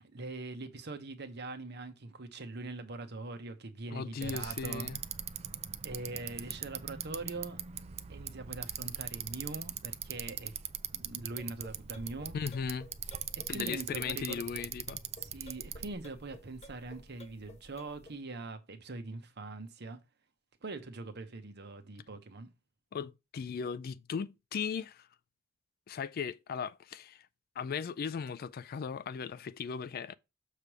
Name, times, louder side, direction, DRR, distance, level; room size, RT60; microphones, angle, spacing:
voice 1, 0.0-4.9 5.8-7.6 8.1-10.5 10.9-12.3 13.4-14.5 15.2-20.0 20.6-22.5, right 2 dB, 55° right, 1.0 m, -42 dB
voice 2, 3.9-5.0 12.3-12.9 13.5-15.0 22.9-25.1 25.9-27.3 27.6-30.2, left 6 dB, 50° left, 0.3 m, -37 dB
Bicycle, 4.2-15.9, right 9 dB, 30° right, 0.4 m, -41 dB
sound 1, 11.3-18.2, left 1 dB, 30° left, 1.1 m, -54 dB
6.6 x 3.4 x 6.1 m
head